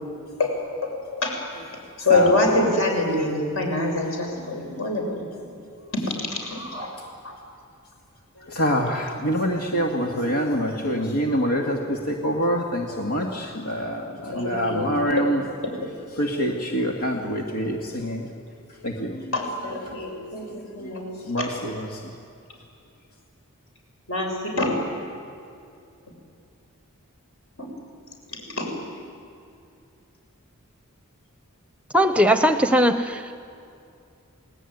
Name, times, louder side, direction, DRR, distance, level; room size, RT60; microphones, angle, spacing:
voice 1, 0.8-1.4 2.0-5.5 5.9-6.0 6.4-6.9 7.2-7.3 14.3-15.0 19.3-21.5 24.1-24.8 27.6-27.7 28.6-28.7, left 2 dB, 65° left, 1 dB, 6.8 m, -25 dB
voice 2, 1.6-2.5 3.3-4.9 5.7-5.9 8.4-15.5 16.1-18.3 18.7-22.1, equal, 85° left, 1 dB, 2.3 m, -27 dB
voice 3, 31.9-33.4, equal, 5° right, 9 dB, 0.8 m, -19 dB
29.5 x 19.5 x 9.5 m, 2.5 s
head